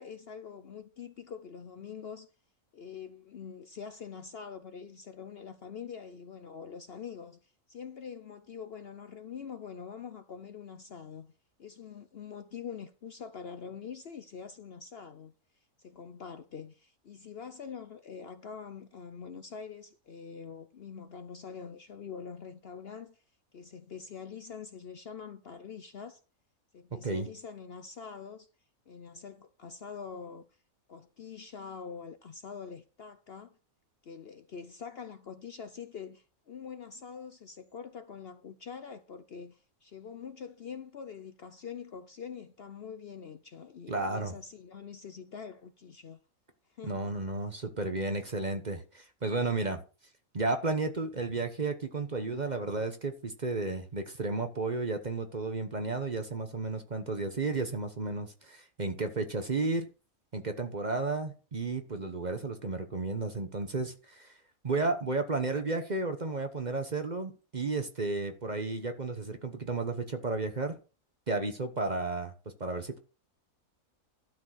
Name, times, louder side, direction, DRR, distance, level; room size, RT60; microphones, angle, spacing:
voice 1, 0.0-2.3 2.7-11.3 11.6-15.3 15.8-23.2 23.5-26.2 26.7-28.5 28.9-30.4 30.9-33.5 34.0-46.2 46.7-47.1, left 6 dB, 55° left, 0.8 m, -44 dB
voice 2, 43.9-44.3 46.8-49.8 50.3-59.9 60.3-64.3 64.6-70.8 71.3-72.3 72.6-73.0, right 3 dB, 35° right, 1.0 m, -33 dB
12.0 x 4.7 x 6.3 m
omnidirectional pair, 1.5 m